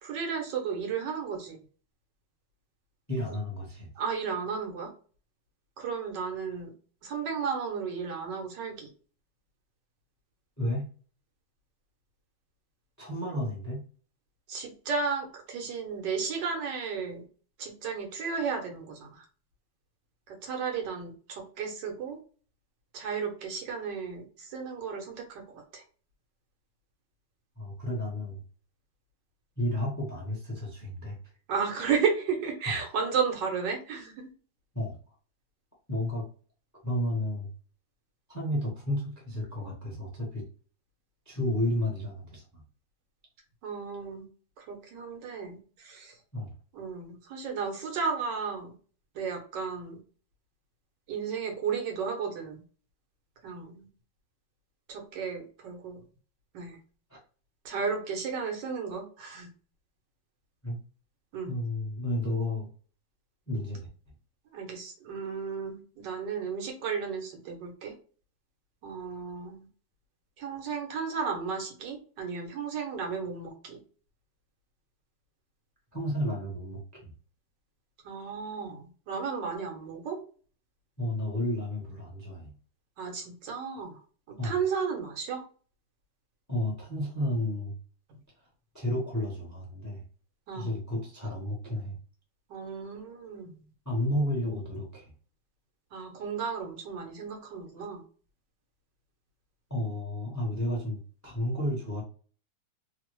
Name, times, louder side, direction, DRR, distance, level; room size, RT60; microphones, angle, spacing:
voice 1, 0.0-1.6 4.0-4.9 5.8-6.7 7.0-8.9 14.5-17.2 17.6-19.2 20.3-22.2 22.9-25.8 31.5-34.3 43.6-44.3 44.6-46.1 46.7-48.7 49.1-50.0 51.1-52.6 53.4-53.9 54.9-56.0 56.5-56.8 57.6-59.5 61.3-61.5 64.5-67.9 68.8-69.7 70.4-73.8 78.0-80.2 83.0-84.0 84.3-85.4 90.5-90.7 92.5-93.6 95.9-98.0, right 6 dB, 90° right, 2 dB, 1.5 m, -33 dB
voice 2, 3.1-3.9 10.6-10.9 13.0-13.8 27.6-28.4 29.6-31.2 32.7-32.9 34.7-35.0 35.9-36.2 36.8-37.5 38.3-40.5 41.3-42.6 46.3-46.5 57.1-57.2 60.6-60.8 61.5-62.7 63.5-63.9 75.9-77.1 81.0-82.5 84.4-84.5 86.5-87.7 88.7-90.0 90.5-92.0 93.9-95.1 99.7-102.0, left 1 dB, 20° left, -2 dB, 0.4 m, -32 dB
3.4 x 2.0 x 3.0 m, 0.40 s
omnidirectional pair, 1.9 m